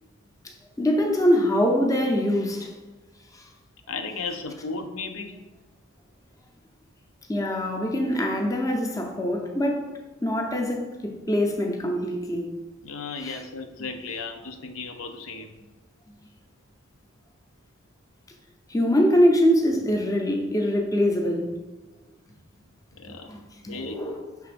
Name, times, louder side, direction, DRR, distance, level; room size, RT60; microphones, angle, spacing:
voice 1, 0.8-2.7 7.3-9.9 10.2-12.5 13.2-13.4 18.7-21.5 23.3-23.4 23.6-24.3, equal, 15° left, 0.6 m, -23 dB
voice 2, 3.9-5.4 12.8-15.5 23.0-23.3 23.7-24.2, left 4 dB, 80° left, 0.6 m, -35 dB
6.1 x 3.4 x 5.0 m
head